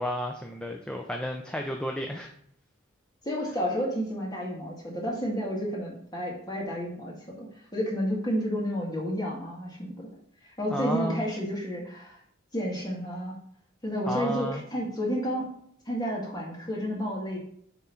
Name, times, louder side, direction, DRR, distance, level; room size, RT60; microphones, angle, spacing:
voice 1, 0.0-2.3 10.7-11.3 14.1-14.6, equal, 5° left, 2 dB, 0.4 m, -32 dB
voice 2, 3.2-10.1 10.6-12.2 12.5-13.4 13.8-15.5 15.9-17.4, equal, 20° left, -3 dB, 2.0 m, -31 dB
9.1 x 3.7 x 4.4 m, 0.64 s
head